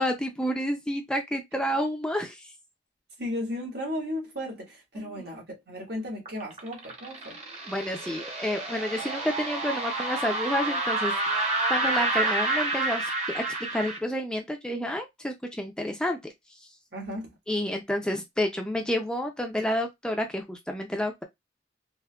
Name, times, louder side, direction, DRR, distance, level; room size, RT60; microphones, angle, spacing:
voice 1, 0.0-2.5 7.7-11.4 11.7-16.2 17.5-21.2, equal, 5° left, 0.4 m, -29 dB
voice 2, 3.2-7.4 16.9-17.4, left 1 dB, 60° right, 1.4 m, -35 dB
sound 1, 6.3-14.0, right 2 dB, 35° right, 1.0 m, -29 dB
3.5 x 2.5 x 2.2 m
head